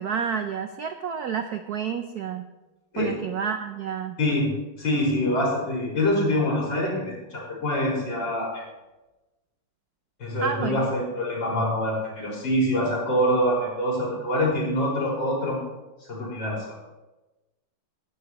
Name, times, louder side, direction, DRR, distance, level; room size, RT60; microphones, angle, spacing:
voice 1, 0.0-2.5 3.0-4.2 10.4-10.9, right 7 dB, 65° right, 7 dB, 1.0 m, -29 dB
voice 2, 4.2-4.5 4.8-8.6 10.2-15.7 16.1-16.6, left 1 dB, 60° left, -4 dB, 5.7 m, -25 dB
19.5 x 12.5 x 3.0 m, 1.1 s
omnidirectional pair, 2.3 m